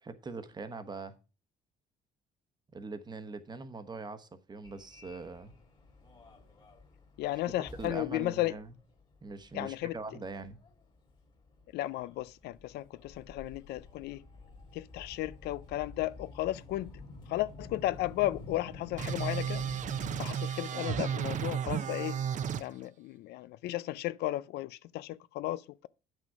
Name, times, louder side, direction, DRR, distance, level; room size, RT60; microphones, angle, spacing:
voice 1, 0.0-1.1 2.7-5.5 7.3-8.7 9.2-10.6, right 3 dB, 25° right, 1.0 m, -42 dB
Subway metro underground, 4.6-20.2, left 3 dB, 30° left, 2.0 m, -50 dB
voice 2, 7.2-8.6 9.5-10.0 11.7-14.2 14.7-16.9 17.3-19.6 20.2-22.2 22.6-25.9, left 16 dB, 75° left, 0.4 m, -34 dB
sound 1, 19.0-22.6, right 8 dB, 45° right, 0.7 m, -33 dB
8.9 x 6.3 x 4.7 m
cardioid pair, 110°, 17 cm